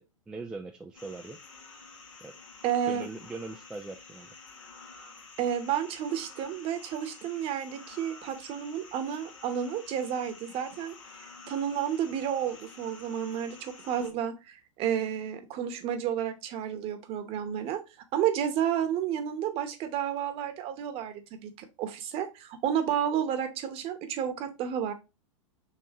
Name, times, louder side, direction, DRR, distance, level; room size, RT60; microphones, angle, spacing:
voice 1, 0.0-1.4 2.2-2.3 2.9-4.3, right 3 dB, 5° right, 3 dB, 0.3 m, -41 dB
sound 1, 0.9-14.1, left 4 dB, 70° left, 1.5 m, -50 dB
voice 2, 2.6-3.1 5.4-10.9 11.2-17.8 18.1-21.5 21.8-24.9, right 9 dB, 35° right, 8 dB, 1.0 m, -31 dB
6.6 x 2.6 x 2.9 m, 0.26 s
hypercardioid pair, 110°, 17 cm